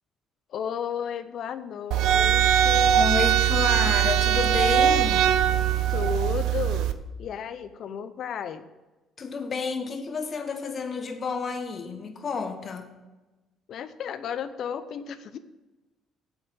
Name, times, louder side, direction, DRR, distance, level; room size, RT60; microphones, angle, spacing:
voice 1, 0.5-3.0 5.9-8.7 13.7-15.4, left 7 dB, 60° left, 12 dB, 0.6 m, -33 dB
sound 1, 1.9-6.9, right 10 dB, 70° right, 0.5 m, -21 dB
voice 2, 2.9-5.3 9.2-12.9, left 4 dB, 45° left, 7 dB, 1.2 m, -30 dB
8.0 x 6.0 x 6.9 m, 1.1 s
hypercardioid pair, 55°, 0 cm